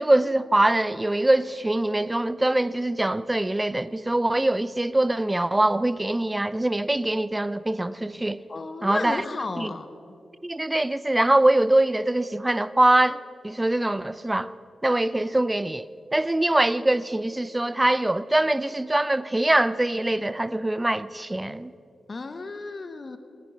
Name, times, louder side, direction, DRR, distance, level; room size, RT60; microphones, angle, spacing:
voice 1, 0.0-8.4 8.8-9.2 9.6-9.7 10.4-14.5 14.8-21.7, right 1 dB, 20° right, 0.5 m, -23 dB
voice 2, 8.5-9.9 22.1-23.2, left 3 dB, 45° left, 0.9 m, -33 dB
18.0 x 10.5 x 5.7 m
cardioid pair, 50°, 0 cm